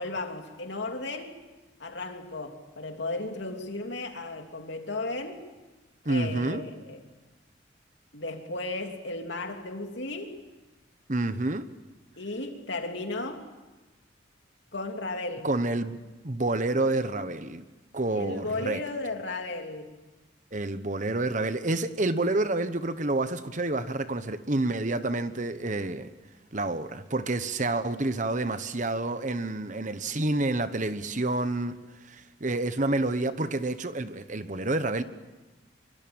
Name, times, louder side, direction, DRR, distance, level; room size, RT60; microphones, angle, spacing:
voice 1, 0.0-1.4 1.8-5.4 6.1-7.0 8.1-10.4 12.2-13.5 14.7-15.5 18.1-19.9, left 2 dB, 70° left, 3.1 m, -35 dB
voice 2, 6.0-6.6 11.1-11.6 15.4-16.0 16.2-17.6 17.9-18.8 20.5-26.1 26.5-31.7 32.1-35.0, right 2 dB, 40° right, 1.1 m, -28 dB
25.0 x 24.0 x 8.9 m
head